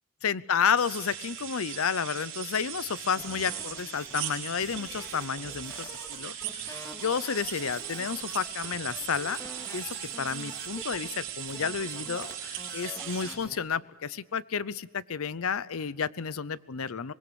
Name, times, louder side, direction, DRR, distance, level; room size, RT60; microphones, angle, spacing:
voice 1, 0.2-6.3 6.6-9.4 9.7-17.1, left 6 dB, 80° left, 19 dB, 0.6 m, -31 dB
sound 1, 0.8-13.3, right 10 dB, 60° right, 4.9 m, -39 dB
sound 2, 3.2-13.6, equal, 15° left, 2.0 m, -46 dB
24.5 x 20.5 x 6.9 m, 1.2 s
head